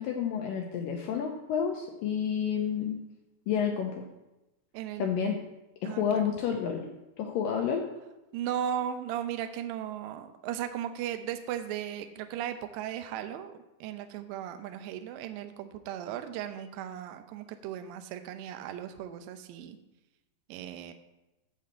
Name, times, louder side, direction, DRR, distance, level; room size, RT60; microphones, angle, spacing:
voice 1, 0.0-3.0 3.5-4.1 5.0-5.4 5.8-6.9 7.2-7.8, left 7 dB, 85° left, 2 dB, 1.9 m, -30 dB
voice 2, 4.7-5.1 5.8-6.2 8.3-19.8 20.5-20.9, right 10 dB, 80° right, 8 dB, 2.1 m, -36 dB
12.0 x 4.2 x 7.6 m, 0.98 s
omnidirectional pair, 4.9 m